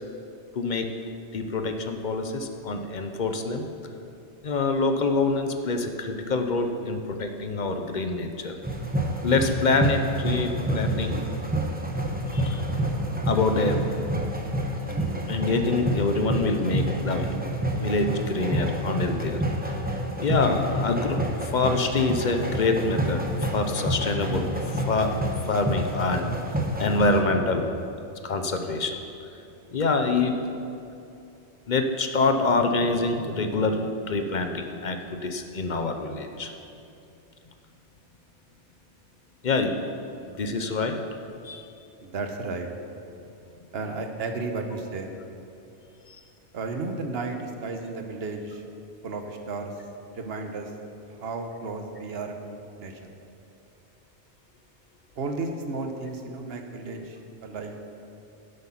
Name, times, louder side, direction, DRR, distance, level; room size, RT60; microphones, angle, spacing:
voice 1, 0.6-0.9 1.3-3.7 4.4-8.5 9.2-11.2 12.3-12.6 13.3-13.9 15.3-17.4 17.8-19.4 20.2-25.2 25.5-26.3 26.8-27.7 28.2-29.0 29.7-30.4 31.7-36.5 39.4-39.8 40.4-41.0 41.4-41.6, left 3 dB, 45° left, 6 dB, 0.8 m, -26 dB
sound 1, 8.6-27.2, right 1 dB, 10° right, 0.9 m, -28 dB
voice 2, 42.0-42.7 43.7-45.2 46.5-48.6 49.0-49.7 50.1-50.7 51.2-53.0 55.2-57.8, right 3 dB, 60° right, 5 dB, 1.2 m, -33 dB
10.5 x 7.9 x 5.8 m, 2.7 s
omnidirectional pair, 1.2 m